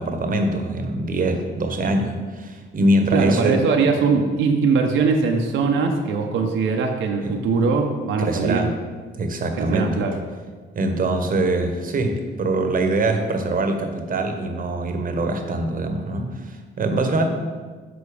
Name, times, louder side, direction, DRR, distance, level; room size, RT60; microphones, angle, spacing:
voice 1, 0.0-3.6 7.2-7.4 8.2-8.7 9.2-10.0 10.7-17.3, right 2 dB, 45° right, 5 dB, 0.9 m, -23 dB
voice 2, 3.1-8.7 9.6-10.2, right 4 dB, 80° right, 3 dB, 0.7 m, -21 dB
7.0 x 3.9 x 5.0 m, 1.5 s
cardioid pair, 90°, 20 cm